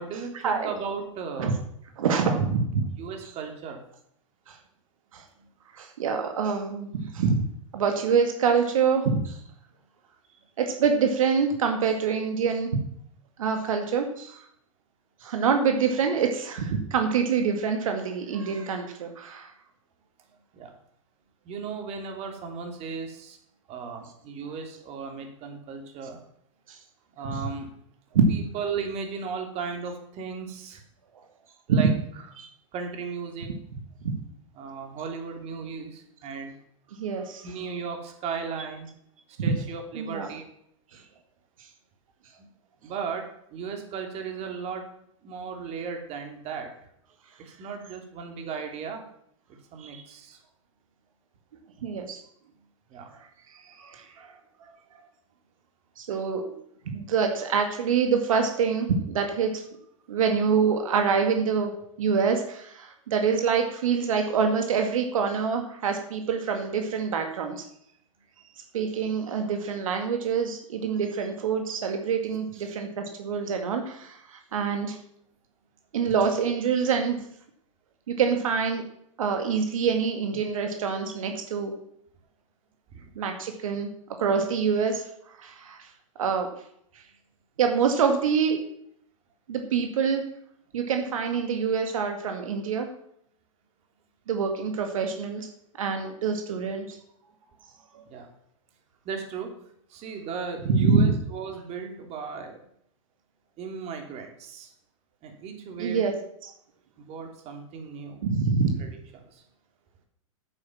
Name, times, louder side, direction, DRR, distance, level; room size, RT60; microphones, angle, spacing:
voice 1, 0.0-1.6 2.1-2.4 3.0-3.8 5.4-5.5 20.5-20.7 21.4-23.4 23.7-26.2 27.2-27.7 28.3-30.8 31.7-31.9 32.7-33.5 34.6-36.5 37.4-38.9 39.4-40.5 42.4-42.5 42.8-44.9 45.2-46.7 47.4-49.0 49.7-50.4 52.9-53.1 83.0-83.1 98.1-98.3 99.0-99.5 99.9-102.6 103.6-104.7 105.2-106.0 107.0-108.3 108.8-108.9 109.1-109.4, right 5 dB, 40° right, 4 dB, 3.1 m, -36 dB
voice 2, 2.0-2.8 4.5-4.6 5.1-5.2 5.7-7.4 7.7-9.4 10.6-12.8 13.4-14.4 15.2-19.5 26.7-26.8 28.1-28.4 31.7-31.8 32.4-32.5 34.0-34.1 36.9-37.5 40.0-40.3 40.9-41.0 49.8-50.0 51.8-52.2 53.6-54.3 56.0-56.6 56.9-59.6 60.1-61.7 62.0-67.6 68.7-75.0 75.9-77.2 78.1-78.8 79.2-81.7 83.2-83.9 84.2-85.0 85.4-85.9 86.2-86.5 87.6-88.6 89.5-90.2 90.7-92.9 94.3-95.5 95.8-97.0 97.9-98.0 100.7-101.1 105.8-106.1 106.4-106.5 108.2-108.7, right 6 dB, 80° right, 4 dB, 2.1 m, -26 dB
9.7 x 8.8 x 7.3 m, 0.71 s
hypercardioid pair, 120°, 17 cm